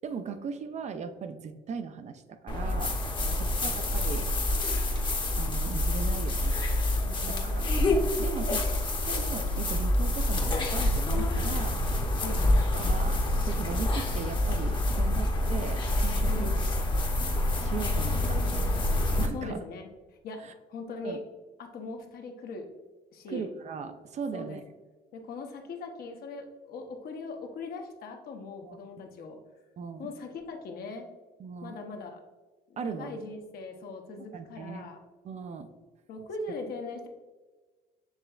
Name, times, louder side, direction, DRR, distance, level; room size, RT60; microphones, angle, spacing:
voice 1, 0.0-3.0 3.3-4.3 5.4-6.6 7.3-7.7 8.2-8.8 9.1-11.8 12.7-16.5 17.6-18.4 19.2-19.6 20.4-20.5 21.0-21.2 23.3-24.6 28.6-28.8 29.8-30.1 31.4-31.8 32.8-33.2 34.2-34.9 35.2-35.7, right 6 dB, 45° right, 9 dB, 0.4 m, -38 dB
sound 1, 2.5-19.3, left 1 dB, 30° left, 0.8 m, -27 dB
voice 2, 3.2-3.8 7.0-7.7 12.2-12.5 16.2-16.6 19.3-19.9 20.2-20.4 20.7-21.2 21.6-22.7 23.1-23.5 24.3-24.6 25.1-29.4 30.0-31.1 31.6-32.2 32.7-35.0 36.1-37.1, left 3 dB, 60° left, 4 dB, 0.8 m, -40 dB
7.1 x 3.2 x 2.3 m, 1.3 s
cardioid pair, 110°, 17 cm